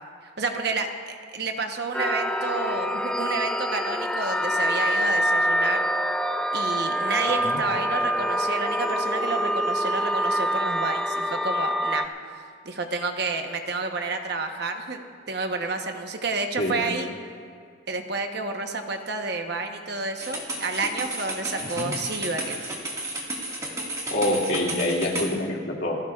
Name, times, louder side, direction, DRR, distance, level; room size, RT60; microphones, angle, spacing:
voice 1, 0.4-5.9 6.5-12.1 12.3-15.0 15.3-17.1 17.9-22.6, right 3 dB, 55° right, 5 dB, 1.0 m, -30 dB
sound 1, 1.9-12.1, equal, 5° left, 0.3 m, -25 dB
sound 2, 20.2-25.3, right 1 dB, 15° right, 1.8 m, -32 dB
voice 2, 21.6-21.9 24.1-26.0, left 1 dB, 55° left, -2 dB, 2.3 m, -26 dB
27.5 x 14.5 x 2.4 m, 2.3 s
head